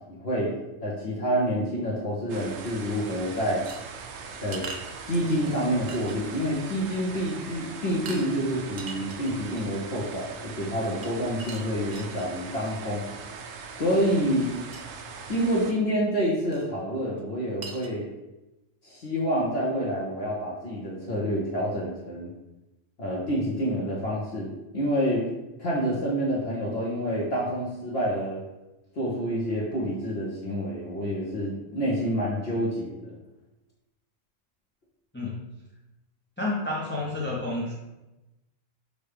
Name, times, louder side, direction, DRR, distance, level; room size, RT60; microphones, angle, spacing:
voice 1, 0.1-0.5 0.8-3.6 4.4-13.0 13.8-14.5 15.3-18.0 18.8-22.3 23.0-25.2 25.6-28.4 28.9-33.1, equal, 55° left, -6 dB, 1.0 m, -28 dB
sound 1, 2.3-15.7, right 5 dB, 85° right, 0.9 m, -41 dB
sound 2, 3.7-5.5 5.9-6.4 6.8-6.9 7.3-7.5 8.0-8.3 8.7-9.8 11.0-12.3 13.9-14.1 14.4-14.5 14.7-14.8 16.5-16.7 17.2-17.3 17.6-17.9, right 4 dB, 60° right, 0.4 m, -42 dB
voice 2, 36.4-37.7, left 2 dB, 15° left, -5 dB, 0.5 m, -29 dB
6.4 x 2.2 x 3.3 m, 0.99 s
omnidirectional pair, 1.3 m